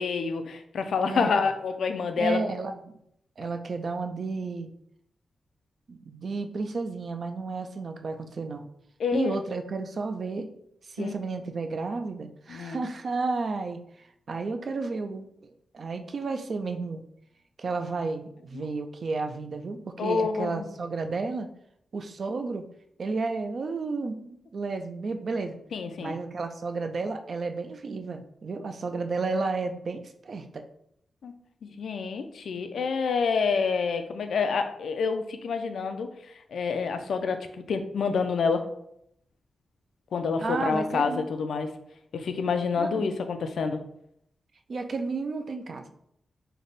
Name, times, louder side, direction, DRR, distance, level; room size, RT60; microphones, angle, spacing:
voice 1, 0.0-2.4 9.0-9.4 11.0-11.1 12.5-12.8 18.5-18.7 20.0-20.7 25.7-26.2 31.2-31.3 31.6-36.1 36.5-38.7 40.1-41.7 42.1-43.8, left 5 dB, 75° left, 7 dB, 0.3 m, -28 dB
voice 2, 2.2-3.0 3.4-4.7 5.9-8.7 9.1-10.5 10.9-13.8 14.3-17.0 17.6-21.5 21.9-22.6 23.0-25.6 26.0-30.6 40.4-41.3 42.8-43.1 44.7-45.8, right 3 dB, 50° right, 7 dB, 0.3 m, -32 dB
3.3 x 2.1 x 3.9 m, 0.74 s
wide cardioid pair, 125°, 0 cm